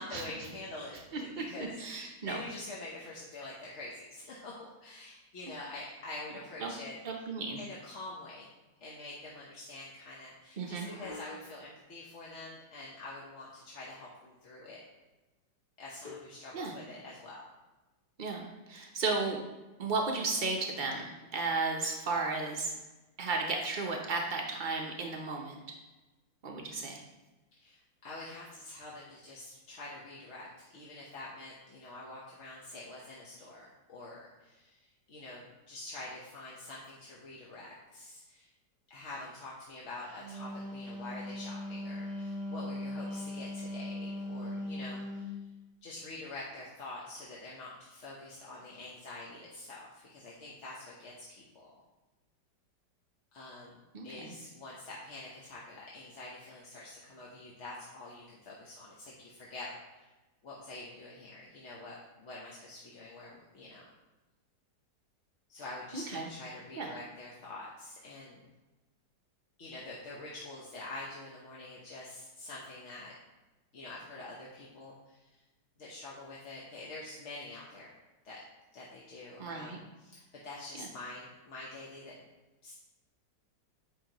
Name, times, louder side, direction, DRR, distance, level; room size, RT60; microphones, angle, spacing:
voice 1, 0.0-7.2 7.6-8.5 8.8-14.8 15.8-17.4 27.5-30.5 30.7-38.5 38.9-45.3 45.8-51.8 53.3-53.8 54.0-60.1 60.4-63.9 65.5-68.5 69.6-73.1 73.7-75.4 75.8-77.9 78.2-78.4 78.7-82.2 82.6-82.7, left 2 dB, 50° left, -5 dB, 1.1 m, -46 dB
voice 2, 1.8-2.4 6.6-6.7 7.0-7.6 10.6-10.9 16.5-16.7 18.2-19.4 19.8-22.7 23.2-25.5 26.4-27.0 53.9-54.3 65.9-66.2 66.8-66.9 79.4-79.8 80.8-80.9, right 3 dB, 85° right, 1 dB, 0.4 m, -34 dB
sound 1, 10.7-11.7 13.9-14.2 14.5-14.6 16.0-16.4, left 3 dB, 30° left, 0.8 m, -48 dB
Wind instrument woodwind instrument, 40.0-45.3, left 1 dB, 5° right, 1.2 m, -39 dB
9.0 x 5.4 x 2.9 m, 1.1 s
omnidirectional pair, 2.0 m